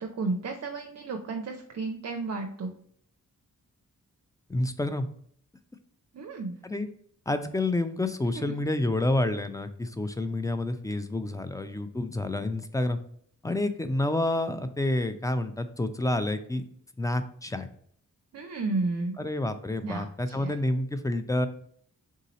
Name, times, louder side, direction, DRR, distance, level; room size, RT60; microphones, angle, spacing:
voice 1, 0.0-2.8 6.1-6.5 8.4-8.5 18.3-19.2 19.8-20.5, right 3 dB, 50° right, 3 dB, 0.5 m, -32 dB
voice 2, 4.5-5.1 6.6-6.9 7.3-13.0 13.4-16.6 17.0-17.7 19.2-21.5, left 2 dB, 10° left, 10 dB, 0.4 m, -29 dB
3.7 x 2.7 x 4.0 m, 0.62 s
cardioid pair, 75°, 33 cm